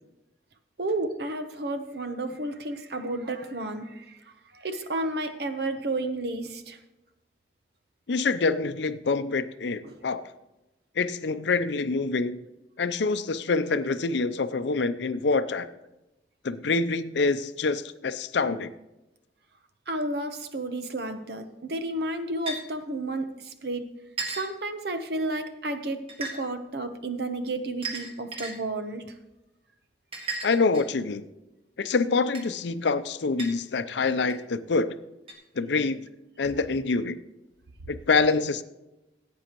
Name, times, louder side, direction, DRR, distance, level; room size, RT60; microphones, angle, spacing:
voice 1, 0.8-6.8 9.8-10.0 19.9-23.9 24.3-29.1, right 2 dB, 65° right, 8 dB, 0.9 m, -32 dB
voice 2, 8.1-10.3 11.0-12.4 12.8-15.7 16.4-18.7 30.4-31.2 31.8-35.0 35.6-36.0 36.4-37.2 37.9-38.6, left 4 dB, 80° left, 12 dB, 0.6 m, -26 dB
sound 1, 22.5-22.6 24.2-24.5 26.1-26.4 27.8-28.5 30.1-31.0 32.3-32.5 33.4-33.5 34.3-34.4 35.3-35.4, right 3 dB, 30° right, 1.8 m, -34 dB
16.5 x 8.4 x 3.0 m, 0.97 s
head